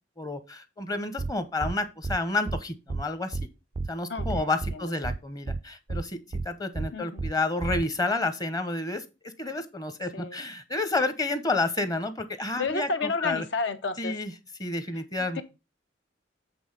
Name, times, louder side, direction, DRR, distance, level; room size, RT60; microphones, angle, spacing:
voice 1, 0.2-3.4 3.9-13.4 14.0-14.3 14.6-15.4, left 2 dB, 20° left, 0.9 m, -30 dB
sound 1, 1.2-1.3 1.6-1.7 2.0-2.2 2.5-2.6 2.9-3.0 3.3-3.5 3.8-3.9 4.2-4.7 5.0-5.2 5.5-5.6 5.9-6.0 6.3-6.5 6.8-6.9 7.2-7.3 7.6-7.8, right 3 dB, 30° right, 0.3 m, -30 dB
voice 2, 4.1-4.6 6.9-7.2 10.1-10.4 12.6-14.2 15.4-15.5, left 4 dB, 70° left, 1.0 m, -31 dB
7.8 x 3.6 x 6.4 m
head